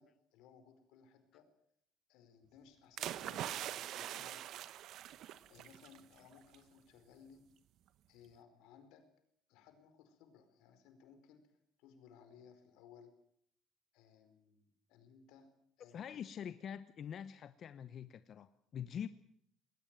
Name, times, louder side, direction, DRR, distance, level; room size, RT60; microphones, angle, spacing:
voice 1, 0.0-1.5 2.1-4.5 5.3-7.4 8.1-9.1 9.5-11.5 11.8-13.1 13.9-15.5 15.8-16.2, left 7 dB, 85° left, 8 dB, 4.8 m, -61 dB
sound 1, 3.0-6.0 6.3-6.6, right 12 dB, 65° right, 1.1 m, -43 dB
voice 2, 15.9-19.1, left 8 dB, 45° left, 13 dB, 0.9 m, -45 dB
20.5 x 19.0 x 9.1 m, 0.69 s
cardioid pair, 130°, 0 cm